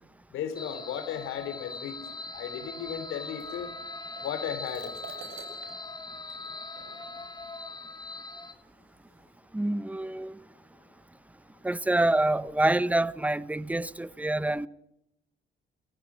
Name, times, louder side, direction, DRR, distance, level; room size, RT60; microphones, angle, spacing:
voice 1, 0.3-3.7 4.2-4.9, left 8 dB, 90° left, 3.3 m, -35 dB
sound 1, 0.6-8.5, left 3 dB, 20° left, 2.9 m, -41 dB
sound 2, 3.2-7.3 8.2-8.3 9.0-9.4, right 6 dB, 85° right, 6.3 m, -48 dB
voice 2, 9.5-10.4 11.6-14.7, right 1 dB, 5° right, 0.8 m, -26 dB
30.0 x 15.0 x 6.2 m
cardioid pair, 90°, 20 cm